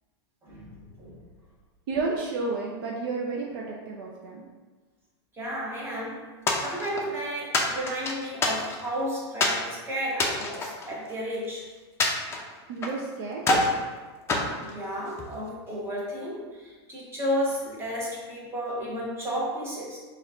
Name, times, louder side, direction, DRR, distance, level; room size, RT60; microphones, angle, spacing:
voice 1, 1.9-4.5 12.7-13.5, right 3 dB, 55° right, -1 dB, 0.6 m, -31 dB
voice 2, 5.3-6.3 6.6-11.7 14.4-20.0, equal, 15° right, -5 dB, 1.3 m, -32 dB
sound 1, 6.5-7.1 7.5-8.9 9.4-9.6 10.1-11.5 12.0-13.0 13.4-13.8 14.3-15.3, left 2 dB, 20° left, 0.6 m, -27 dB
4.2 x 2.5 x 3.7 m, 1.3 s
hypercardioid pair, 130°, 14 cm